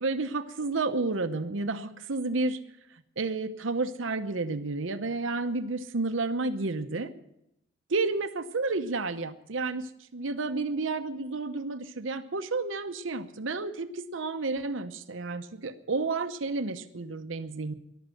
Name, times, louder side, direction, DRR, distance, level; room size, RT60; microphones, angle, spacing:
voice 1, 0.0-2.6 3.2-7.1 7.9-17.7, right 3 dB, 80° right, 9 dB, 0.8 m, -31 dB
14.0 x 11.5 x 7.7 m, 0.81 s
head